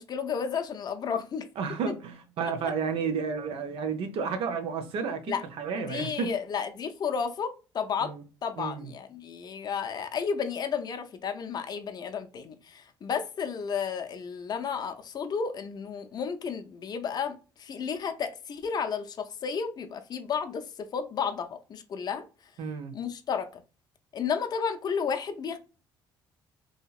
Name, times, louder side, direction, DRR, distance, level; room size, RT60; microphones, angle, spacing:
voice 1, 0.0-1.5 5.3-5.4 5.8-8.1 8.4-22.2 22.9-23.6 24.1-25.6, left 6 dB, 45° left, 0.5 m, -32 dB
voice 2, 1.6-6.3 8.0-8.2 8.6-8.9 22.6-22.9, right 5 dB, 70° right, 0.6 m, -32 dB
2.8 x 2.7 x 2.3 m
supercardioid pair, 70°, 10 cm